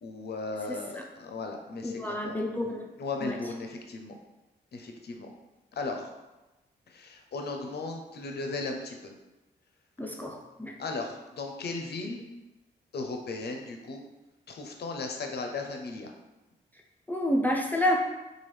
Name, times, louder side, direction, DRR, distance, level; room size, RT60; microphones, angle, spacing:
voice 1, 0.0-2.4 3.0-4.1 4.7-5.3 5.7-6.1 6.9-9.1 10.8-12.2 12.9-14.0 14.5-16.1, left 3 dB, 55° left, 3 dB, 0.6 m, -36 dB
voice 2, 1.8-2.9 3.2-3.4 10.0-10.7 17.1-18.0, left 1 dB, 10° left, 0 dB, 0.5 m, -29 dB
3.0 x 2.4 x 3.2 m, 1.0 s
supercardioid pair, 40°, 20 cm